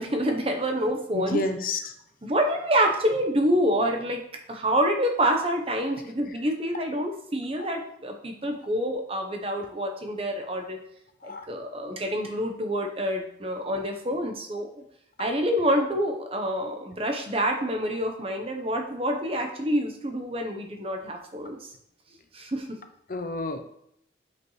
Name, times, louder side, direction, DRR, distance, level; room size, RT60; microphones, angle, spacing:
voice 1, 0.0-1.4 2.2-4.2 4.5-10.8 11.2-14.7 15.2-21.6 22.3-22.7, equal, 30° right, 4 dB, 0.9 m, -27 dB
voice 2, 1.1-1.9 7.6-7.7 11.2-11.5 23.1-23.6, left 2 dB, 45° left, 7 dB, 0.6 m, -30 dB
8.4 x 5.2 x 3.2 m, 0.72 s
head